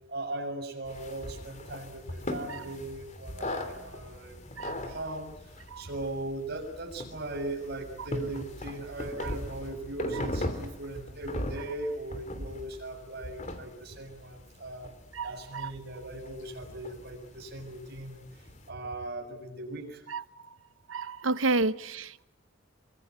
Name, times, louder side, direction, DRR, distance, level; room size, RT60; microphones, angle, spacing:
voice 1, 0.1-14.9 15.2-20.1, right 2 dB, 55° right, 6.9 m, -39 dB
sound 1, 0.9-18.7, left 1 dB, 35° left, 3.0 m, -40 dB
voice 2, 20.9-22.2, right 3 dB, 80° right, 1.0 m, -30 dB
24.5 x 24.0 x 9.7 m
head